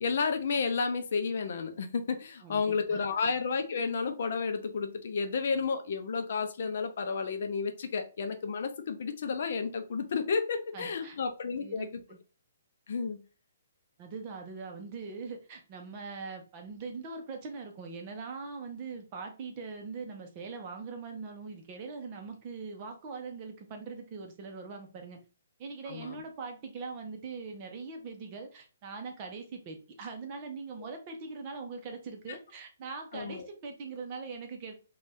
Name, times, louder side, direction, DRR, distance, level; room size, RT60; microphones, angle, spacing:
voice 1, 0.0-11.9 12.9-13.2 25.9-26.2 33.1-33.5, left 5 dB, 55° left, 7 dB, 0.5 m, -31 dB
voice 2, 2.4-3.1 10.7-11.2 11.6-12.2 14.0-25.2 25.6-34.7, right 4 dB, 30° right, 3 dB, 0.6 m, -42 dB
2.6 x 2.2 x 3.3 m, 0.34 s
hypercardioid pair, 165°, 0 cm